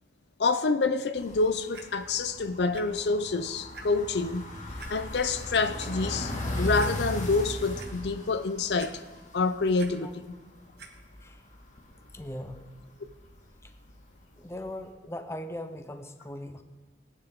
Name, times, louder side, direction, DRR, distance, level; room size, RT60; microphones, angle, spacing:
voice 1, 0.4-4.5 4.9-9.0 9.3-10.4, left 3 dB, 75° left, 0.6 m, -27 dB
sound 1, 1.2-10.1 10.4-10.5 10.7-12.6 12.9-13.6 13.9-14.0 14.6-14.7, left 1 dB, 45° left, 1.8 m, -37 dB
Clock, 1.7-1.8 2.7-2.8 3.3-3.4 3.7-3.8 4.8-4.9 5.6-5.9 6.4-6.5 6.8-6.9 7.4-7.9 8.8-9.3 9.6-9.9 10.8-10.9 11.6-11.7, right 5 dB, 65° right, 1.4 m, -46 dB
voice 2, 12.1-12.7 13.6-13.7 14.4-16.6, left 1 dB, 15° left, 0.7 m, -39 dB
18.5 x 10.0 x 3.7 m
head